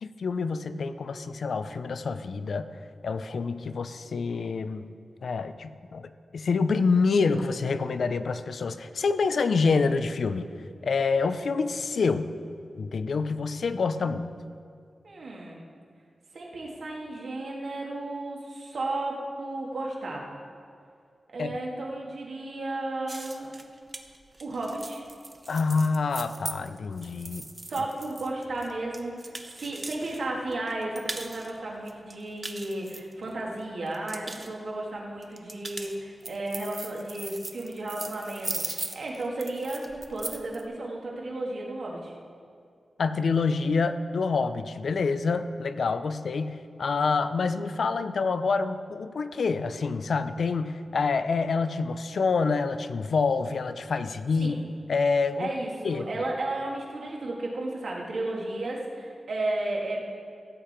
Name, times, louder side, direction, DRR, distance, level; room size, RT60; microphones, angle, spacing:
voice 1, 0.0-2.7 3.0-4.9 5.2-10.5 10.8-12.3 12.8-14.3 21.4-21.5 25.5-27.5 43.0-54.6 54.9-55.5 55.8-56.0, left 4 dB, 65° left, 11 dB, 0.5 m, -27 dB
voice 2, 15.0-15.6 16.3-20.3 21.3-23.5 24.4-25.0 27.7-42.1 54.4-54.6 55.4-60.0, right 2 dB, 65° right, -2 dB, 2.2 m, -33 dB
sound 1, 23.1-30.2 30.5-31.5 31.9-33.5 33.9-34.5 35.2-40.6, right 2 dB, 25° right, 0.7 m, -39 dB
15.5 x 8.8 x 4.4 m, 2.4 s
wide cardioid pair, 170°, 0 cm